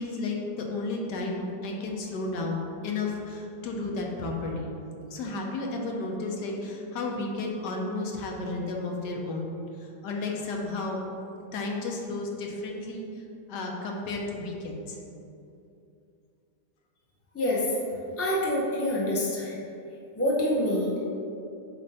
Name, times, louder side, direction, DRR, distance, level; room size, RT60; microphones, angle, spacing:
voice 1, 0.0-4.7 5.1-9.6 10.0-11.0 11.5-13.0 13.5-15.0, left 3 dB, 90° left, 0 dB, 1.5 m, -32 dB
voice 2, 17.3-17.7 18.2-19.6 20.2-21.0, left 1 dB, 15° left, -6 dB, 0.5 m, -26 dB
7.7 x 2.6 x 5.4 m, 2.7 s
omnidirectional pair, 1.8 m